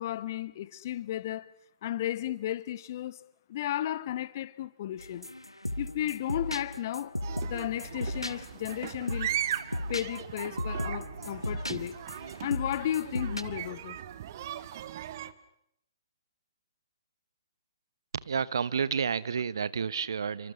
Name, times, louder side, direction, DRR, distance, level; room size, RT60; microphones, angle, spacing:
voice 1, 0.0-1.5 1.8-3.2 3.5-5.3 5.8-9.4 9.9-12.0 12.4-14.0, left 12 dB, 40° left, 1.3 m, -34 dB
sound 1, 5.0-13.4, left 1 dB, 85° left, 1.8 m, -37 dB
sound 2, 7.2-15.3, right 11 dB, 40° right, 1.5 m, -38 dB
voice 2, 18.1-20.5, right 6 dB, 55° right, 1.1 m, -30 dB
29.5 x 25.0 x 6.9 m
figure-of-eight pair, 125°, 3 cm